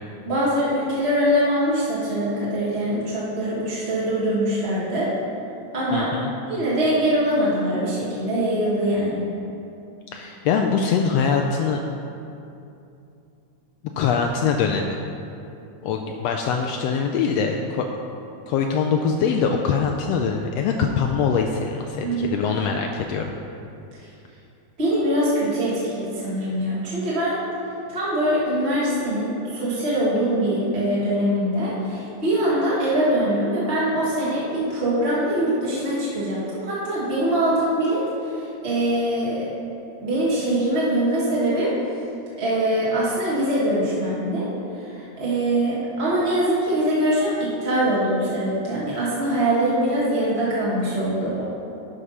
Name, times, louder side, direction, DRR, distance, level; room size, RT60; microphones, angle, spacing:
voice 1, 0.2-5.1 5.7-6.1 6.4-9.2 22.0-22.3 24.8-27.4 27.9-38.1 38.6-39.5 40.0-41.7 42.4-44.5 44.9-51.4, right 1 dB, 30° right, -8 dB, 1.4 m, -23 dB
voice 2, 5.9-6.3 10.1-11.8 14.0-15.0 15.8-17.9 18.5-23.3, left 6 dB, 80° left, 2 dB, 1.5 m, -23 dB
11.0 x 5.1 x 5.5 m, 2.7 s
omnidirectional pair, 3.4 m